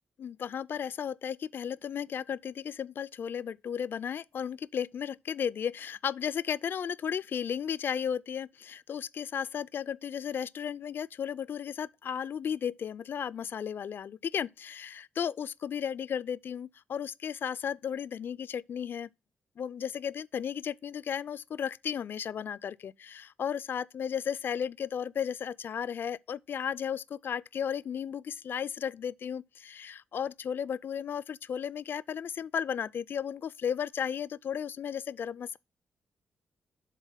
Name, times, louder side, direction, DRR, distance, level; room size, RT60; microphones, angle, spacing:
voice 1, 0.2-19.1 19.6-35.6, left 8 dB, 65° left, 0.3 m, -34 dB
7.3 x 3.7 x 5.6 m
cardioid pair, 60°, 4 cm